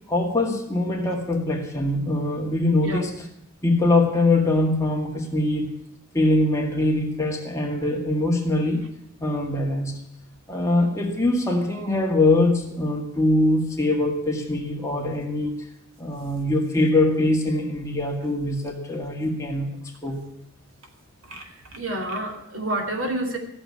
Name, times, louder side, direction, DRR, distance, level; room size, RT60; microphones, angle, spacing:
voice 1, 0.1-3.2 3.6-5.7 6.1-8.8 9.2-9.9 10.5-15.6 16.0-19.7 20.0-20.2, left 2 dB, 15° left, 0 dB, 2.0 m, -23 dB
voice 2, 21.2-23.4, right 1 dB, 70° right, 3 dB, 2.5 m, -29 dB
14.5 x 7.1 x 9.6 m, 0.76 s
head